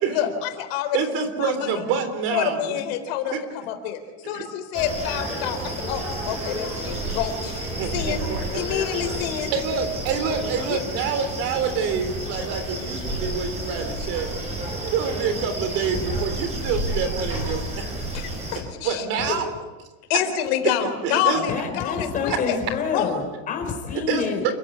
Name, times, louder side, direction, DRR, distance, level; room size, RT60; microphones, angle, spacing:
voice 1, 0.1-1.0 1.3-1.7 2.3-4.0 4.2-7.6 7.9-8.2 8.5-9.5 10.7-10.8 18.1-19.0 20.1-22.6 22.9-23.2, left 10 dB, 65° left, 7 dB, 4.1 m, -27 dB
voice 2, 0.9-2.8 3.3-3.4 4.2-4.4 7.8-8.6 9.5-14.3 14.8-17.9 18.3-18.4 18.8-19.5 20.6-20.8 21.0-21.6 23.9-24.3, right 6 dB, 45° right, 9 dB, 3.6 m, -27 dB
sound 1, 4.7-18.6, right 1 dB, 20° right, 7.0 m, -30 dB
voice 3, 21.3-24.5, left 6 dB, 25° left, 4 dB, 4.8 m, -28 dB
29.0 x 16.0 x 9.8 m, 1.2 s
cardioid pair, 180°, 32 cm